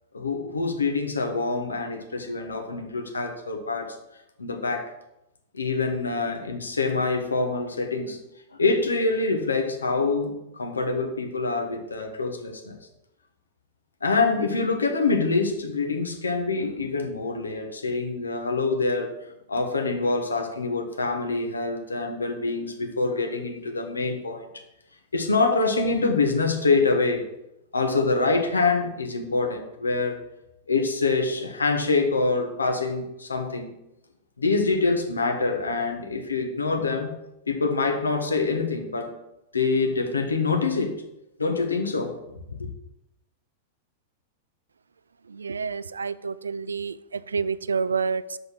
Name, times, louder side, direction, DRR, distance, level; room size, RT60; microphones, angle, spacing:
voice 1, 0.1-4.0 4.4-4.9 5.5-8.2 8.5-12.8 14.0-19.1 19.5-24.4 25.1-27.3 27.7-30.2 30.7-33.7 34.4-37.1 37.5-39.2 39.5-41.0 41.4-42.2 42.6-42.7, left 3 dB, 80° left, 5 dB, 1.2 m, -25 dB
voice 2, 45.3-48.4, right 5 dB, 80° right, 17 dB, 0.3 m, -29 dB
6.2 x 5.2 x 6.1 m, 0.89 s
figure-of-eight pair, 95°, 0 cm